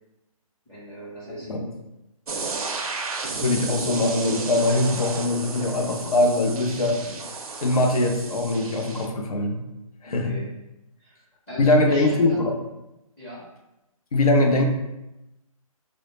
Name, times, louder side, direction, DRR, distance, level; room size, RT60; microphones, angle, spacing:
voice 1, 0.7-1.5 10.0-10.5 11.0-12.5 13.2-13.4, equal, 10° left, -11 dB, 0.6 m, -38 dB
sound 1, 2.3-9.1, right 4 dB, 75° right, 0.4 m, -33 dB
voice 2, 3.4-7.0 7.6-9.6 10.0-10.4 11.6-12.5 14.1-14.6, left 2 dB, 75° left, 3 dB, 0.5 m, -22 dB
2.1 x 2.0 x 2.9 m, 0.93 s
hypercardioid pair, 155°, 19 cm